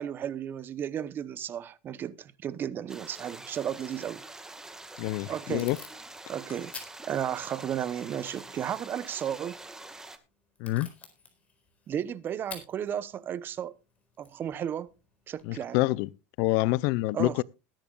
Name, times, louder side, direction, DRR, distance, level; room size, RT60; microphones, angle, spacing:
voice 1, 0.0-4.2 5.3-5.7 6.3-6.7 7.0-9.6 11.9-13.7 14.2-14.9 15.3-15.8 17.1-17.4, right 9 dB, 35° right, 0.9 m, -34 dB
sound 1, 2.9-10.2, right 2 dB, 10° right, 1.8 m, -46 dB
Packing tape duct tape / Tearing, 4.7-15.5, left 4 dB, 20° left, 4.5 m, -52 dB
voice 2, 5.0-5.8 10.6-10.9 15.4-16.1 16.4-17.4, left 19 dB, 60° left, 0.5 m, -27 dB
20.5 x 10.5 x 2.4 m
supercardioid pair, 115°, 6 cm